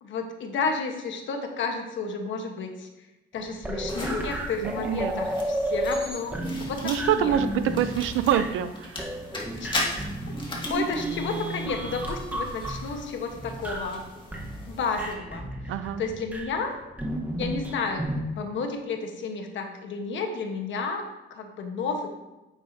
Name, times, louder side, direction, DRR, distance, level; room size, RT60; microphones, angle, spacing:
voice 1, 0.0-2.9 3.3-7.4 9.6-9.7 10.7-14.0 14.7-15.5 16.0-16.8 17.4-22.1, left 4 dB, 70° left, 4 dB, 1.3 m, -31 dB
sound 1, 3.4-8.7 9.0-14.0 14.3-16.5 17.0-18.2, right 1 dB, 10° right, 1.2 m, -33 dB
sound 2, 3.9-15.1, left 2 dB, 25° left, 2.1 m, -38 dB
voice 2, 4.6-5.1 6.8-9.0 15.7-16.0, right 10 dB, 85° right, 11 dB, 0.6 m, -25 dB
9.1 x 7.1 x 2.8 m, 1.0 s
cardioid pair, 90°, 20 cm